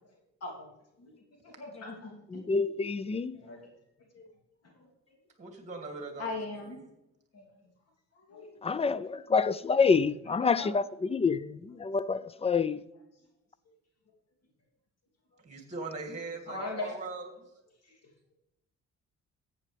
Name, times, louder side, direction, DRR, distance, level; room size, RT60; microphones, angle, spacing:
voice 1, 1.0-2.4 3.3-3.7 4.1-4.3 4.6-5.1 6.2-6.8 7.3-7.7 8.1-8.7 9.2-9.3 10.0-10.7 13.7-13.8 16.5-17.0 17.8-18.3, left 2 dB, 55° left, 2.9 m, -41 dB
voice 2, 2.3-3.4 8.6-10.8 11.1-12.8, left 5 dB, 20° left, 0.4 m, -27 dB
voice 3, 5.4-6.3 6.5-6.6 15.4-17.3, right 3 dB, 25° right, 2.6 m, -40 dB
14.0 x 8.6 x 3.4 m
cardioid pair, 90°, 30 cm